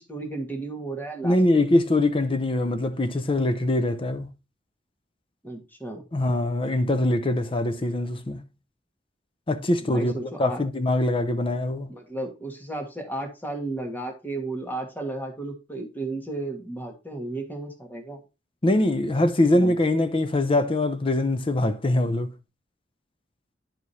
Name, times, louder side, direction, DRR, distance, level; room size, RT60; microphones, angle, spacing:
voice 1, 0.0-1.4 5.4-6.0 9.8-10.6 11.9-18.2 19.5-19.8, right 2 dB, 10° left, 1.5 m, -34 dB
voice 2, 1.2-4.3 6.1-8.4 9.5-11.9 18.6-22.4, left 1 dB, 30° left, 0.6 m, -23 dB
10.5 x 4.8 x 2.7 m
head